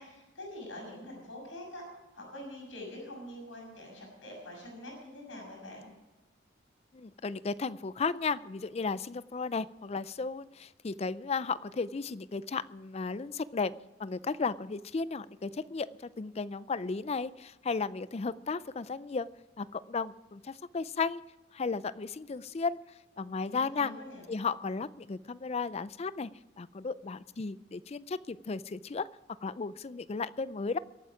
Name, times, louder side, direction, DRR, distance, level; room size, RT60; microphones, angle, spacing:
voice 1, 0.0-1.8 2.1-5.9 23.4-24.2, left 1 dB, 70° left, -1 dB, 6.3 m, -45 dB
voice 2, 6.9-13.7 14.0-19.3 19.6-21.2 21.5-22.8 23.2-23.9 24.3-26.3 26.6-29.1 29.4-30.8, left 4 dB, 30° left, 17 dB, 0.4 m, -34 dB
23.0 x 8.8 x 4.9 m, 1.1 s
head